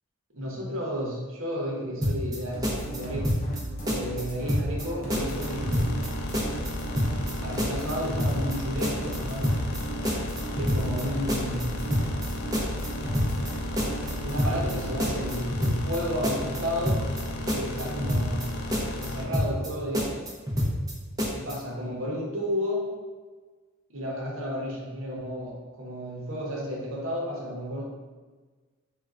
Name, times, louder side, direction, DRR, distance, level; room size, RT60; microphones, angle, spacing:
voice 1, 0.3-3.4 3.8-6.0 7.4-9.5 10.6-11.9 14.2-17.0 17.4-18.5 19.0-20.2 21.3-22.9 23.9-27.8, equal, 65° right, -3 dB, 0.8 m, -32 dB
sound 1, 2.0-2.4 2.6-3.6 3.9-4.2 4.5-4.8 5.1-6.1 6.3-6.7 7.0-7.3 7.6-8.6 8.8-9.2 9.4-9.8 10.1-11.0 11.3-11.6 11.9-12.3 12.5-13.5 13.8-14.1 14.4-14.7 15.0-16.0 16.2-16.6 16.9-17.2 17.5-18.5 18.7-19.1 19.3-19.7 19.9-20.9 21.2-21.5, equal, 15° right, 0.5 m, -27 dB
sound 2, 2.5-15.4, right 1 dB, 40° left, 0.6 m, -37 dB
sound 3, 5.1-19.3, left 1 dB, 90° left, 0.3 m, -35 dB
3.5 x 2.2 x 2.4 m, 1.4 s
head